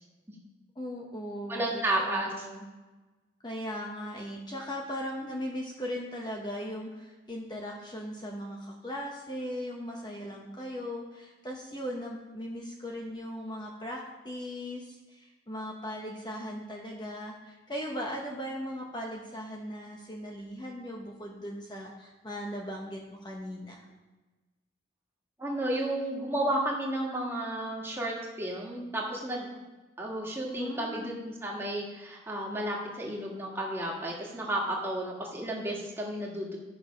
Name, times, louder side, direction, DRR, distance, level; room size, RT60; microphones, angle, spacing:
voice 1, 0.8-2.6 3.4-23.8 30.6-31.2, equal, 25° left, -1 dB, 0.9 m, -38 dB
voice 2, 1.5-2.3 25.4-29.5 30.0-36.6, right 1 dB, 15° right, -2 dB, 1.7 m, -32 dB
11.0 x 6.2 x 5.2 m, 1.2 s
head